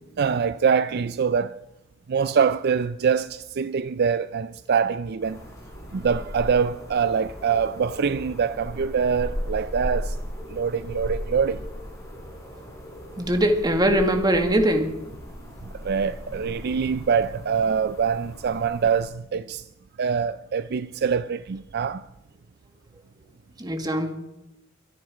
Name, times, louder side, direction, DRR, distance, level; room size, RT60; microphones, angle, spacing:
voice 1, 0.2-1.6 2.1-5.4 5.9-10.2 10.5-11.6 15.8-19.6 20.0-22.0, right 6 dB, 50° right, 0.4 m, -24 dB
sound 1, 5.2-19.0, equal, 15° left, 4.7 m, -37 dB
voice 2, 13.2-14.9 23.6-24.1, right 1 dB, 20° right, 1.8 m, -21 dB
24.0 x 9.4 x 4.9 m
head